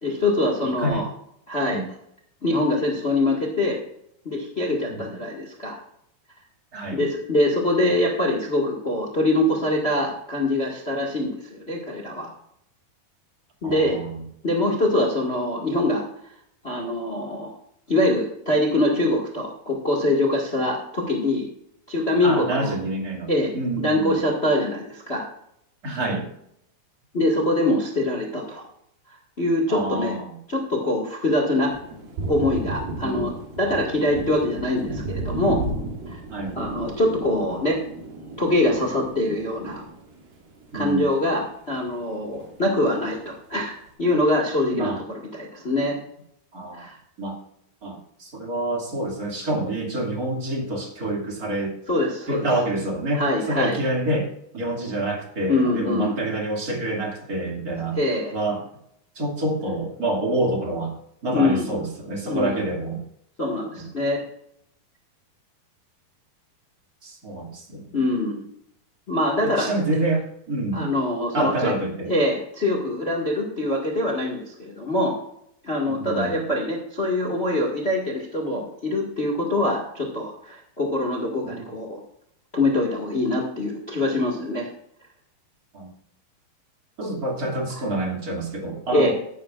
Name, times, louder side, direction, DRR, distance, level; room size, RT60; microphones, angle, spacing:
voice 1, 0.0-1.1 1.5-1.8 2.4-3.8 4.2-5.8 6.9-12.3 13.6-14.0 14.4-16.0 16.6-17.5 17.9-21.5 21.9-22.7 23.3-25.2 27.1-28.6 29.4-30.1 30.5-31.7 32.3-35.6 36.1-36.2 36.5-37.8 38.4-39.8 40.7-43.7 44.0-46.0 46.7-47.0 51.9-52.5 53.1-53.8 55.5-56.1 57.9-58.3 61.3-61.7 62.2-62.6 63.4-64.2 67.9-68.4 69.1-69.7 70.7-71.7 72.1-75.1 75.6-82.0 82.5-84.7 88.9-89.1, left 1 dB, 50° left, 0 dB, 0.7 m, -24 dB
voice 2, 0.6-1.1 1.7-1.9 4.9-5.0 6.7-7.1 13.6-14.2 22.2-24.2 25.8-26.3 29.7-30.4 32.9-33.3 36.3-36.6 40.7-41.1 44.7-45.0 46.5-46.9 47.2-47.4 47.8-51.7 52.3-58.0 58.3-58.7 59.1-60.9 61.2-63.0 63.7-63.9 67.0-68.0 69.4-70.9 71.3-72.1 75.9-76.4 81.4-81.7 85.7-85.9 87.0-89.1, right 1 dB, 25° right, -1 dB, 2.3 m, -27 dB
Thunder, 31.7-41.5 41.8-42.9, right 2 dB, 65° right, 4.3 m, -34 dB
15.0 x 11.5 x 2.5 m, 0.73 s
omnidirectional pair, 4.6 m